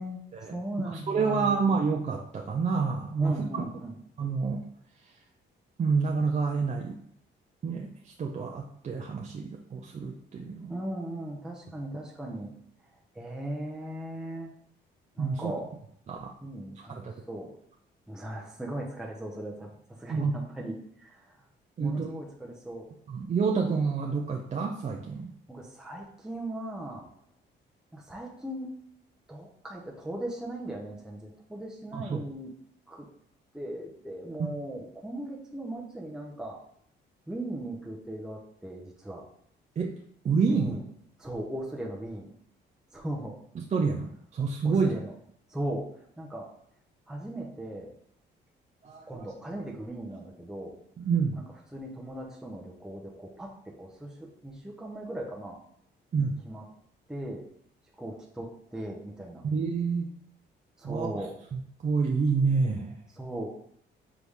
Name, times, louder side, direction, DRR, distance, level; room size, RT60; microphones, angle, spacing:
voice 1, 0.0-1.7 3.2-4.0 10.7-12.6 13.1-14.5 15.2-15.7 16.4-17.5 18.1-21.4 21.8-22.9 25.5-27.1 27.9-28.8 29.3-32.5 32.9-33.1 33.5-36.6 37.3-39.3 40.5-40.9 41.2-42.3 42.9-43.4 44.6-45.1 45.5-46.5 47.1-47.9 49.1-50.8 51.7-55.6 56.2-56.7 57.1-57.5 58.0-59.5 60.8-61.3 63.1-63.5, right 1 dB, 5° right, -1 dB, 0.7 m, -38 dB
voice 2, 0.9-3.6 4.2-4.7 5.8-7.0 7.6-10.8 15.2-15.5 16.1-16.3 16.9-17.2 20.1-20.3 21.8-22.1 23.1-25.3 31.9-32.2 34.4-34.5 39.8-39.9 40.2-40.7 43.6-45.0 48.8-49.2 51.0-51.4 56.1-56.4 59.4-60.1 60.8-61.1 61.5-63.0, right 5 dB, 35° right, 1 dB, 0.5 m, -28 dB
4.8 x 2.6 x 3.5 m, 0.69 s
cardioid pair, 90°, 20 cm